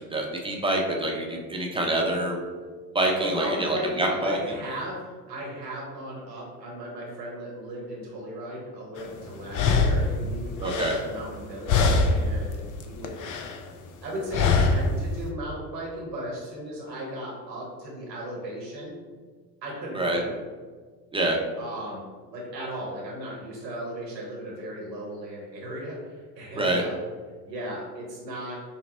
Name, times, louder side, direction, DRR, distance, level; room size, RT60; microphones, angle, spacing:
voice 1, 0.0-2.4 2.9-4.4 10.6-10.9 19.9-20.2 21.1-21.4 26.6-26.8, right 1 dB, 10° right, -1 dB, 0.8 m, -26 dB
voice 2, 3.2-13.2 14.0-18.9 19.6-20.4 21.6-22.0 22.3-27.0 27.4-28.6, right 1 dB, 90° right, -3 dB, 1.4 m, -36 dB
sound 1, 9.0-9.1 9.5-11.4 11.7-12.4 12.7-13.6 14.3-15.0, left 4 dB, 40° left, 0.6 m, -23 dB
5.8 x 2.0 x 4.1 m, 1.5 s
hypercardioid pair, 70°, 49 cm